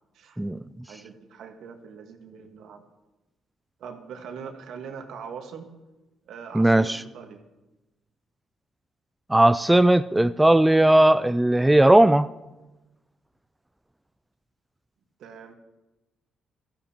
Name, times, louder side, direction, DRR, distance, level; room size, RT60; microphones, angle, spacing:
voice 1, 0.9-2.8 3.8-5.7 6.3-7.4 15.2-15.5, right 6 dB, 75° right, 5 dB, 1.5 m, -41 dB
voice 2, 6.5-7.0 9.3-12.3, right 1 dB, 10° right, 13 dB, 0.3 m, -17 dB
16.5 x 13.5 x 2.9 m, 1.1 s
cardioid pair, 90°, 0 cm